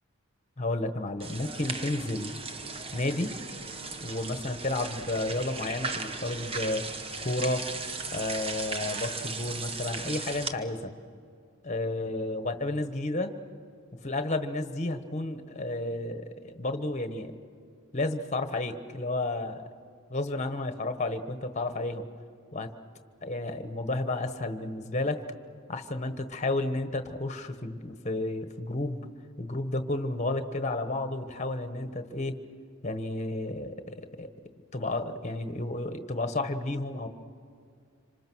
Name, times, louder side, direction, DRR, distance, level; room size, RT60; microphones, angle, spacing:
voice 1, 0.6-2.3 2.9-3.3 4.0-6.8 7.2-7.7 8.1-10.9 11.6-13.3 14.0-17.3 17.9-19.7 20.1-22.1 22.5-22.7 23.2-25.2 25.7-29.0 29.4-32.4 32.8-34.3 34.7-37.1, left 2 dB, 30° left, 8 dB, 1.3 m, -32 dB
sound 1, 1.2-10.5, right 4 dB, 25° right, 1.1 m, -37 dB
26.5 x 26.0 x 6.3 m, 2.3 s
head